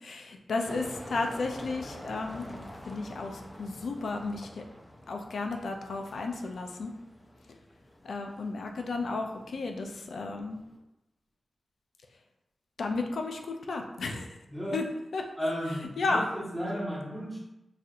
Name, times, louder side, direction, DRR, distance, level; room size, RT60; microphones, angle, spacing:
voice 1, 0.0-4.6 5.1-6.9 8.0-10.6 12.8-14.3 14.7-14.8 15.1-15.2 16.0-16.3, left 3 dB, 90° left, 3 dB, 0.4 m, -33 dB
sound 1, 0.7-10.8, left 1 dB, 15° left, 0.5 m, -47 dB
voice 2, 14.5-14.8 15.4-17.4, equal, 5° right, -9 dB, 1.3 m, -34 dB
4.0 x 2.7 x 2.5 m, 0.91 s
wide cardioid pair, 105°, 0 cm